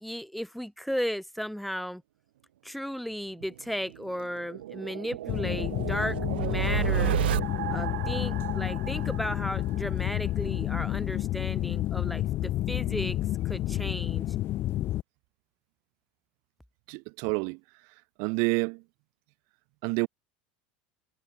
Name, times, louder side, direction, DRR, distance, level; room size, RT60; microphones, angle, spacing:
voice 1, 0.0-2.0 2.6-7.2 7.7-13.2 13.4-14.3, equal, ahead, 1.7 m, -35 dB
sound 1, 3.4-10.2, right 13 dB, 90° right, 0.5 m, -33 dB
sound 2, 5.3-15.0, left 14 dB, 45° left, 0.5 m, -30 dB
voice 2, 16.9-17.6 18.2-18.8 19.8-20.1, right 35 dB, 65° right, 0.8 m, -28 dB
supercardioid pair, 105°, 5 cm